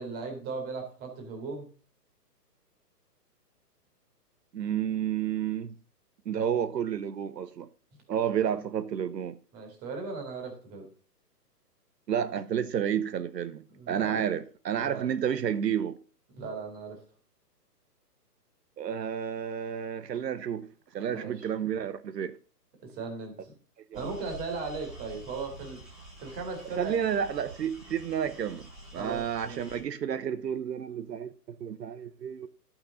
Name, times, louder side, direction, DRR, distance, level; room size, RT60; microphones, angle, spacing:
voice 1, 0.0-1.7 8.4-8.5 9.5-10.9 13.8-14.3 14.7-15.1 16.3-17.0 21.1-21.5 22.8-23.5 23.9-25.8 26.2-26.9 29.0-29.6, right 4 dB, 20° right, 2.2 m, -38 dB
voice 2, 4.5-5.7 6.3-7.7 8.1-9.4 12.1-16.0 18.8-20.7 20.9-22.4 23.9-24.1 26.8-28.7 28.9-32.5, right 9 dB, 80° right, 0.8 m, -31 dB
sound 1, 23.9-29.8, equal, ahead, 1.8 m, -47 dB
11.5 x 6.0 x 3.9 m
hypercardioid pair, 150°, 49 cm